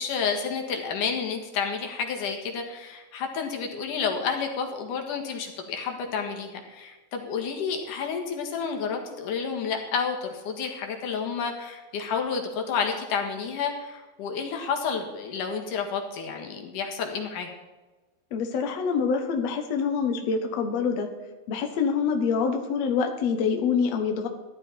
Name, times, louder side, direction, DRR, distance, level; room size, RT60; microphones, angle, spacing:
voice 1, 0.0-17.5, left 6 dB, 85° left, 2 dB, 3.3 m, -30 dB
voice 2, 18.3-21.1 21.5-24.3, left 5 dB, 65° left, 4 dB, 2.2 m, -26 dB
14.5 x 12.0 x 4.5 m, 1.2 s
omnidirectional pair, 3.5 m